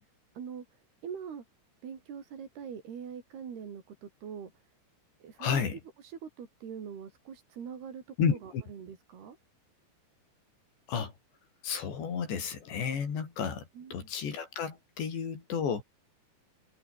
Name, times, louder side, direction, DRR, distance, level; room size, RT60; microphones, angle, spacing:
voice 1, 0.4-1.4 1.8-4.5 5.2-5.6 6.0-9.4 13.7-14.1, right 7 dB, 65° right, 5.7 m, -43 dB
voice 2, 5.4-5.8 8.2-8.6 10.9-11.1 11.6-13.6 13.9-15.8, left 6 dB, 75° left, 7.0 m, -32 dB
omnidirectional pair, 5.1 m